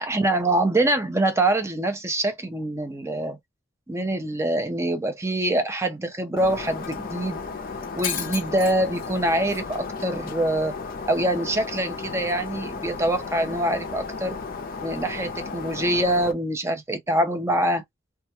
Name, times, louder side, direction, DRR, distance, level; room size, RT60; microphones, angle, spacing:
voice 1, 0.0-3.4 3.9-7.4 8.0-10.7 11.1-14.4 14.8-17.8, right 1 dB, 15° right, 0.5 m, -24 dB
Shatter, 6.4-16.3, left 5 dB, 45° left, 0.5 m, -34 dB
2.3 x 2.1 x 2.8 m
head